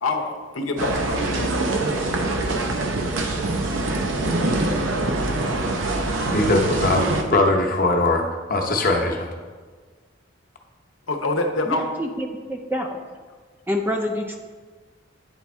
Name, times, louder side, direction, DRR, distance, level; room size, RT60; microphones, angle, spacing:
voice 1, 0.0-1.7 11.1-11.9, left 2 dB, 85° left, 5 dB, 0.7 m, -26 dB
sound 1, 0.8-7.2, right 2 dB, 75° right, 0.7 m, -24 dB
voice 2, 6.3-7.0 7.3-9.3, left 2 dB, 45° left, 1 dB, 0.8 m, -20 dB
voice 3, 11.7-13.0 13.7-14.4, left 1 dB, 10° right, 3 dB, 0.4 m, -27 dB
8.9 x 3.6 x 4.2 m, 1.5 s
head